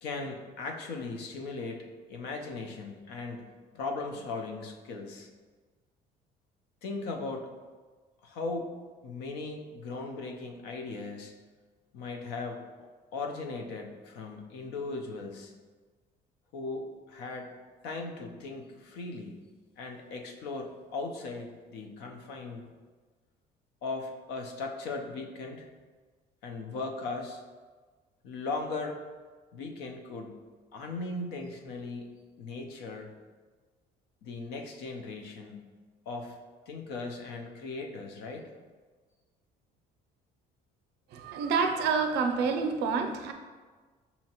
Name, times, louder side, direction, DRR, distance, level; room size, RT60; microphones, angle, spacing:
voice 1, 0.0-3.4 3.7-5.3 6.8-7.5 8.2-8.8 9.0-11.3 11.9-12.6 13.1-15.5 16.5-17.5 17.8-19.4 19.8-22.7 23.8-25.7 26.4-27.4 28.2-29.0 29.5-30.4 30.7-32.1 32.4-33.1 34.2-35.7 36.1-36.4 36.7-38.5, left 3 dB, 85° left, 2 dB, 0.6 m, -38 dB
voice 2, 41.1-43.3, right 5 dB, 85° right, 5 dB, 0.5 m, -28 dB
5.4 x 2.8 x 2.8 m, 1.4 s
cardioid pair, 110°, 17 cm